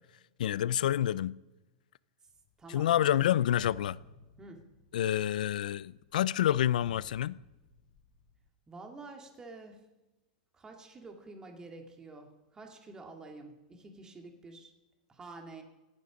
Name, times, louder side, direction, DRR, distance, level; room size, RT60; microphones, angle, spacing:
voice 1, 0.4-1.4 2.7-4.0 4.9-7.4, left 11 dB, 80° left, 0.4 m, -28 dB
sound 1, 2.3-3.2 3.6-8.5, left 6 dB, 30° left, 2.4 m, -54 dB
voice 2, 2.6-3.1 4.4-4.6 8.7-9.8 10.5-14.7 15.1-15.6, right 3 dB, 15° right, 2.4 m, -48 dB
26.5 x 9.6 x 5.2 m
supercardioid pair, 135°, 4 cm